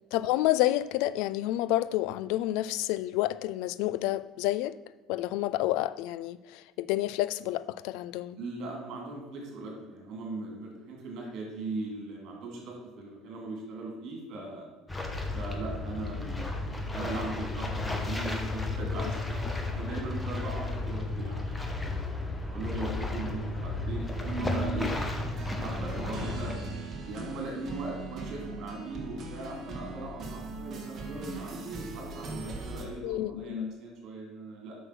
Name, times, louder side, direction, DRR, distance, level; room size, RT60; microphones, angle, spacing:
voice 1, 0.1-4.8 5.1-8.4 19.0-19.1 33.0-33.7, left 15 dB, 75° left, 17 dB, 0.4 m, -29 dB
voice 2, 8.4-14.7 15.3-16.6 16.9-19.4 19.7-24.9 25.6-26.5 27.1-34.8, right 2 dB, 50° right, 0 dB, 3.1 m, -39 dB
sound 1, 14.9-26.6, left 2 dB, 10° left, 0.9 m, -33 dB
sound 2, 24.2-32.9, right 3 dB, 35° right, 1.5 m, -40 dB
7.9 x 6.2 x 6.2 m, 1.2 s
cardioid pair, 150°, 0 cm